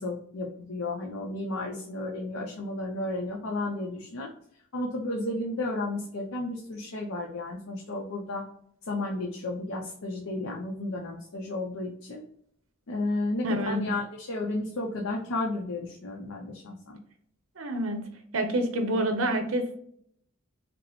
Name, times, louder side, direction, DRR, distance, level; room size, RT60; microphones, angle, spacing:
voice 1, 0.0-4.3 4.7-8.4 8.8-12.2 12.9-17.0, left 2 dB, 80° left, -1 dB, 0.6 m, -33 dB
voice 2, 13.4-13.8 17.6-18.0 18.3-19.8, right 1 dB, 80° right, 6 dB, 0.7 m, -27 dB
5.1 x 2.1 x 3.0 m, 0.66 s
head